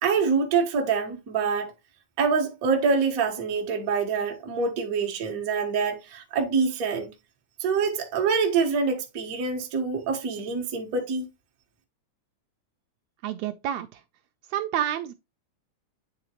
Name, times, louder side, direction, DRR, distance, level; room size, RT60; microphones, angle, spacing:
voice 1, 0.0-1.7 2.2-7.1 7.6-11.3, right 5 dB, 60° right, 0.9 m, -25 dB
voice 2, 13.2-14.0 14.5-15.1, right 11 dB, 80° right, 1.6 m, -29 dB
9.2 x 3.9 x 2.9 m
omnidirectional pair, 3.4 m